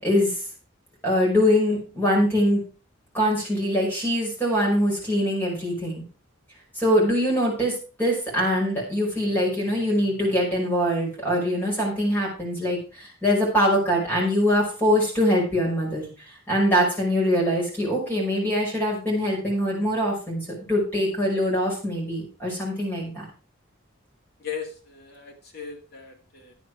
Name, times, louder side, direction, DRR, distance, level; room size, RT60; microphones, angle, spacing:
voice 1, 0.0-0.4 1.0-2.6 3.1-6.0 6.8-20.4 20.7-23.2, equal, 10° left, -3 dB, 5.3 m, -23 dB
voice 2, 24.4-26.5, left 7 dB, 55° left, 2 dB, 2.3 m, -37 dB
10.5 x 9.3 x 4.7 m, 0.35 s
head